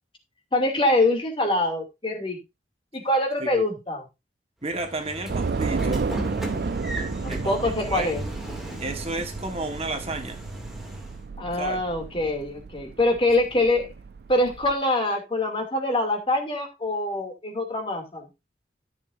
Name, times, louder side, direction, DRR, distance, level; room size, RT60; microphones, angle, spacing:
voice 1, 0.5-2.4 2.9-4.0 7.2-8.2 11.4-13.9 14.3-18.3, left 2 dB, 30° left, 2.6 m, -24 dB
voice 2, 4.6-6.1 7.3-7.5 7.8-8.1 8.8-10.4 11.5-11.8, right 2 dB, 35° right, 1.4 m, -32 dB
Train / Sliding door, 4.7-11.3, equal, ahead, 2.4 m, -37 dB
Train / Subway metro underground, 5.3-14.7, right 4 dB, 60° right, 0.5 m, -32 dB
14.0 x 7.0 x 2.6 m
head